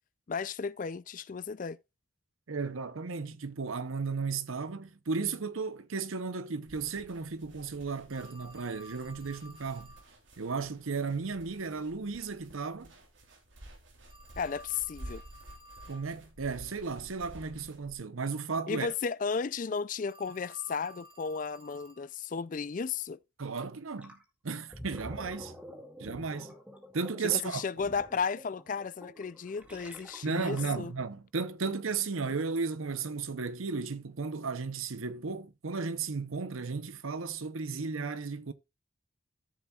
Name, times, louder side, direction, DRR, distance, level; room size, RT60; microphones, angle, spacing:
voice 1, 0.3-1.8 14.4-15.2 18.7-23.2 27.3-30.9, left 5 dB, 40° left, 0.4 m, -34 dB
voice 2, 2.5-9.9 10.4-12.9 15.9-18.9 23.4-24.2 24.4-25.5 26.0-26.5 26.9-27.6 30.2-38.5, right 4 dB, 85° right, 0.8 m, -34 dB
sound 1, 6.7-17.9, right 1 dB, 65° right, 2.9 m, -52 dB
Telephone, 8.1-10.1 14.0-16.1 20.1-22.1, right 1 dB, 25° right, 1.7 m, -53 dB
Gurgling, 24.0-24.2 24.6-31.0, equal, 5° right, 1.9 m, -48 dB
13.5 x 7.1 x 2.4 m
head